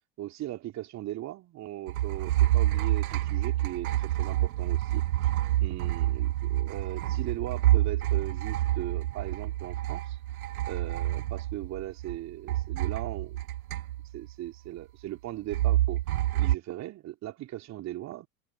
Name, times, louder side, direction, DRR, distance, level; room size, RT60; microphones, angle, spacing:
voice 1, 0.2-5.3 5.6-10.2 10.7-13.4 14.1-16.0 16.4-18.3, right 14 dB, 35° right, 3.5 m, -39 dB
sound 1, 1.9-12.2 12.5-14.3 15.5-16.6, right 14 dB, 60° right, 0.8 m, -28 dB
figure-of-eight pair, 85°, 47 cm